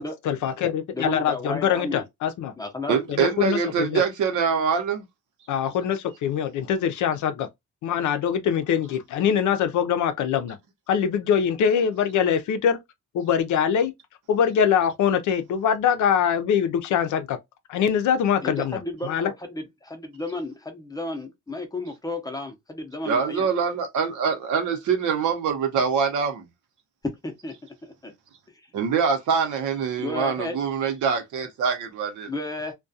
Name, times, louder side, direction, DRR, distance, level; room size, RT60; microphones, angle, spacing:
voice 1, 0.2-2.5 3.2-4.0 5.5-7.5 7.8-10.6 10.9-12.8 13.1-13.9 14.3-17.4 17.7-19.3, left 8 dB, 75° left, 0.5 m, -23 dB
voice 2, 0.9-2.0 2.6-3.0 18.4-23.5 27.2-27.6 27.8-28.1 30.0-30.6 32.3-32.7, left 2 dB, 10° left, 0.6 m, -33 dB
voice 3, 2.9-5.0 23.1-26.5 28.7-32.3, right 6 dB, 75° right, 0.8 m, -24 dB
2.3 x 2.2 x 2.6 m
cardioid pair, 90°, 30 cm